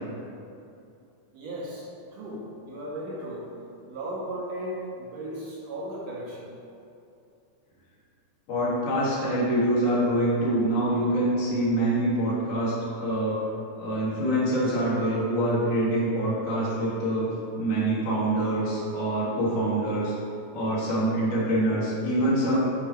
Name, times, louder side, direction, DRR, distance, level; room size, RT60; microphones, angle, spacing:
voice 1, 1.3-3.5 3.9-6.5, right 1 dB, 70° right, -5 dB, 1.8 m, -36 dB
voice 2, 8.5-13.4 13.8-17.3 17.5-20.1 20.5-22.6, right 1 dB, 85° left, -9 dB, 3.1 m, -25 dB
8.4 x 2.9 x 4.4 m, 2.6 s
omnidirectional pair, 3.5 m